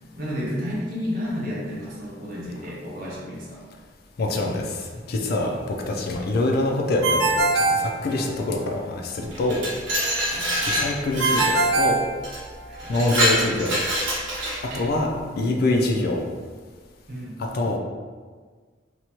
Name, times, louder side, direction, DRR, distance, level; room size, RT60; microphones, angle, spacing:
voice 1, 0.2-3.6 8.1-8.2 10.3-10.5 12.7-12.8 14.7-14.8 17.1-17.4, equal, 50° right, -6 dB, 0.8 m, -31 dB
voice 2, 4.2-9.6 10.6-12.0 12.9-13.8 14.6-16.2 17.4-17.8, left 2 dB, 55° left, 1 dB, 0.4 m, -25 dB
Ringtone, 7.0-8.7 11.2-12.8, right 3 dB, 65° right, 0.3 m, -22 dB
Glass, 9.3-11.6 12.2-12.4 12.8-14.8, equal, 85° right, 0.8 m, -25 dB
2.9 x 2.2 x 2.8 m, 1.5 s
head